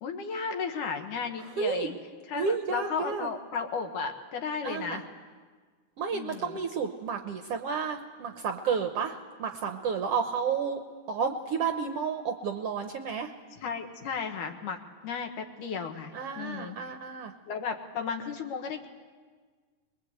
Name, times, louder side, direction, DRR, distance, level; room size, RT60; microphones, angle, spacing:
voice 1, 0.0-2.0 2.3-5.0 6.1-6.6 13.6-16.8 17.5-18.9, left 5 dB, 80° left, 5 dB, 2.9 m, -34 dB
voice 2, 1.4-1.9 2.3-3.3 4.6-5.0 6.0-10.8 11.1-13.3 16.1-17.3, right 6 dB, 70° right, 6 dB, 1.5 m, -31 dB
23.5 x 21.5 x 8.0 m, 1.5 s
omnidirectional pair, 3.7 m